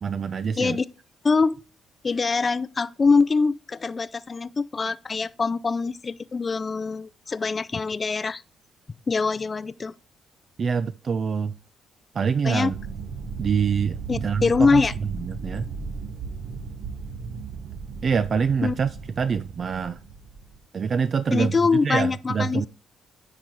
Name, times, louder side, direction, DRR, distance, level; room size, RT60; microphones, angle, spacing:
voice 1, 0.0-0.8 10.6-11.5 12.1-12.8 13.4-14.9 15.2-15.7 18.0-20.0 20.7-21.6 21.8-22.7, right 6 dB, 45° right, 0.4 m, -25 dB
voice 2, 1.2-1.6 2.0-8.4 9.1-9.9 12.4-12.7 14.1-14.9 18.6-18.7 21.3-22.7, left 4 dB, 35° left, 0.4 m, -23 dB
sound 1, 12.7-20.6, right 5 dB, 65° right, 1.0 m, -36 dB
9.9 x 4.0 x 4.6 m
cardioid pair, 90°, 0 cm